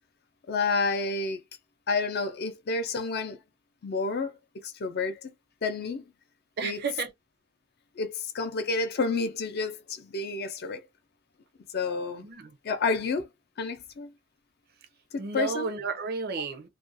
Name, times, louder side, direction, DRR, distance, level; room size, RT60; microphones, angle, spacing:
voice 1, 0.5-1.4 1.9-3.4 3.8-4.3 4.6-5.3 5.6-6.0 6.6-6.8 8.0-10.9 11.7-12.3 12.6-13.3 13.6-14.1 15.1-15.7, left 4 dB, 50° left, 0.4 m, -29 dB
voice 2, 6.6-7.1 12.2-12.5 15.2-16.7, right 5 dB, 50° right, 0.5 m, -32 dB
2.4 x 2.1 x 2.6 m
head